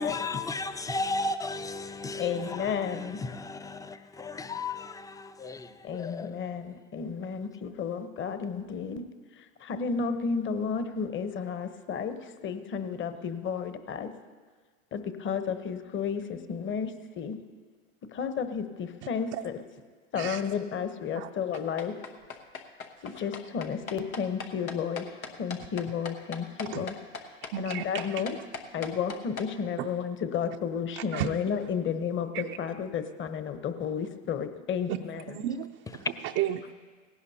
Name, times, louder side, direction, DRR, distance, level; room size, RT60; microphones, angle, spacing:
voice 1, 0.0-6.4, left 3 dB, 10° left, 0.5 m, -35 dB
voice 2, 2.2-3.2 5.8-9.0 9.4-14.1 14.9-17.4 18.1-19.5 20.1-21.9 23.0-26.9 27.3-28.4 28.7-35.4, left 6 dB, 30° left, 1.0 m, -32 dB
voice 3, 20.2-20.5 21.1-21.3 23.1-23.3 26.7-26.9 27.5-28.2 29.8-29.9 31.0-31.7 32.3-32.6 34.9-35.0 35.3-36.7, right 12 dB, 40° right, 0.6 m, -34 dB
sound 1, 21.5-29.5, left 5 dB, 90° left, 1.2 m, -39 dB
18.5 x 16.5 x 2.8 m
hypercardioid pair, 85°, 41 cm